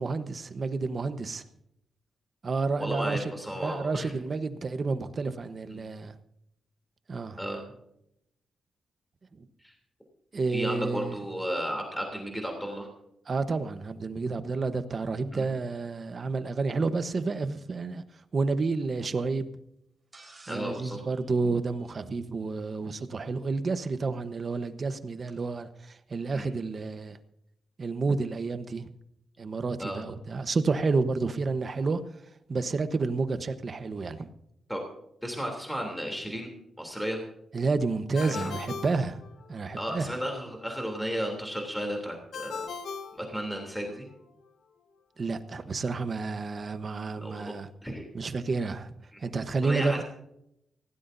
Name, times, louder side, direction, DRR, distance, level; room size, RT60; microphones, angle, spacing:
voice 1, 0.0-1.4 2.4-3.3 3.6-6.1 7.1-7.4 9.4-9.5 10.3-11.2 13.3-18.0 18.3-19.5 20.5-27.2 27.8-28.9 29.4-32.0 32.5-34.3 37.5-39.2 39.5-40.1 45.2-47.7 48.1-48.9 49.2-50.0, right 4 dB, 40° right, 1.0 m, -30 dB
voice 2, 2.8-4.1 5.7-5.8 7.4-7.6 9.6-9.7 10.5-12.9 15.3-15.5 20.5-21.0 26.3-26.5 29.8-30.0 34.7-34.8 35.2-36.5 36.8-37.2 38.2-38.5 39.8-42.7 43.1-44.1 47.2-47.5 47.8-48.1 49.1-49.2 49.6-50.0, equal, ahead, 3.1 m, -34 dB
sound 1, 20.1-22.4 24.0-24.1 25.3-25.4, right 2 dB, 20° right, 3.8 m, -56 dB
Ringtone, 38.1-39.8 42.3-44.0, left 5 dB, 75° left, 1.3 m, -39 dB
19.5 x 17.0 x 2.7 m
wide cardioid pair, 135°, 0 cm